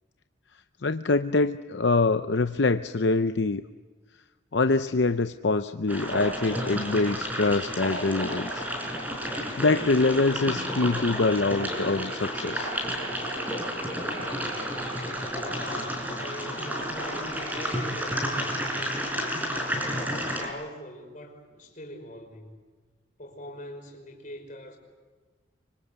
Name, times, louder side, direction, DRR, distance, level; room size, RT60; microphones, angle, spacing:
voice 1, 0.8-3.7 4.5-8.7 9.6-12.7, left 3 dB, 70° left, 9 dB, 0.7 m, -24 dB
sound 1, 5.9-20.5, equal, 10° right, 5.2 m, -31 dB
voice 2, 15.3-19.5 19.9-22.6 23.2-24.8, left 1 dB, 40° left, 3 dB, 5.6 m, -43 dB
25.5 x 25.5 x 8.2 m, 1.5 s
head